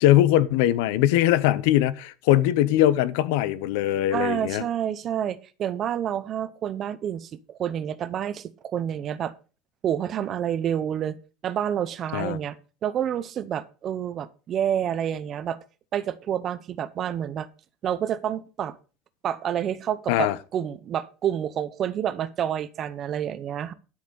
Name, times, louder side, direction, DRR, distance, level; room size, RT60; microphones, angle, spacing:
voice 1, 0.0-4.6 12.1-12.4 20.1-20.4, left 13 dB, 75° left, 0.9 m, -21 dB
voice 2, 4.1-9.3 9.8-12.6 12.8-15.6 15.9-17.5 17.8-18.8 19.2-23.7, right 9 dB, 35° right, 0.8 m, -28 dB
12.0 x 6.6 x 5.3 m
cardioid pair, 160°, 0 cm